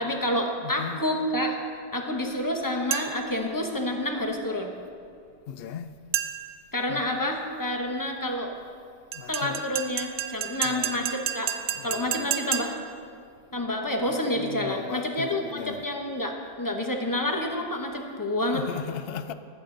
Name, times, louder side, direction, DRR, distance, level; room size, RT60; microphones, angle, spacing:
voice 1, 0.0-1.6 1.9-4.7 6.7-8.5 9.3-11.5 11.8-12.8 13.5-18.6, left 1 dB, 20° left, 1.0 m, -28 dB
voice 2, 0.6-1.0 5.5-5.9 6.9-7.0 8.3-8.4 9.1-9.6 10.6-11.1 11.8-12.3 14.4-15.8 18.5-19.3, left 8 dB, 70° left, 0.8 m, -37 dB
sound 1, 2.9-3.4 6.1-6.6 9.1-13.0, right 9 dB, 60° right, 0.6 m, -31 dB
19.0 x 8.2 x 3.9 m
omnidirectional pair, 1.1 m